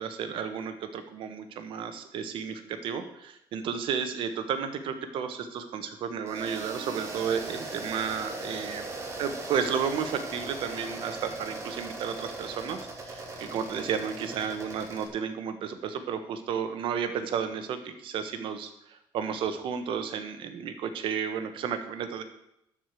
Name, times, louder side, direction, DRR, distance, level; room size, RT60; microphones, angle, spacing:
voice 1, 0.0-8.8 9.2-12.8 13.0-22.2, right 7 dB, 70° right, 8 dB, 1.3 m, -32 dB
sound 1, 6.3-15.1, right 2 dB, 30° right, 2.2 m, -39 dB
11.5 x 5.0 x 7.7 m, 0.79 s
cardioid pair, 115°, 9 cm